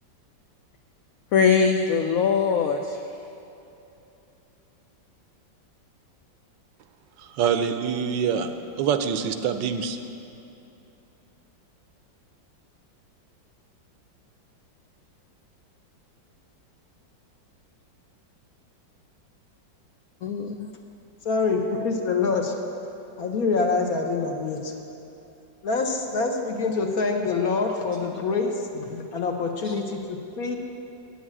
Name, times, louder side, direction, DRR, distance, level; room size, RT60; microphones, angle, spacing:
voice 1, 1.3-3.0 20.2-20.7 28.9-29.0 29.6-29.7, left 6 dB, 80° left, 5 dB, 0.7 m, -22 dB
voice 2, 7.2-8.5 8.8-10.0, right 7 dB, 80° right, 8 dB, 1.2 m, -25 dB
voice 3, 21.2-22.5 23.2-24.7 25.6-28.7 29.1-30.6, left 4 dB, 60° left, 3 dB, 1.2 m, -25 dB
8.6 x 7.3 x 8.6 m, 2.9 s
omnidirectional pair, 2.1 m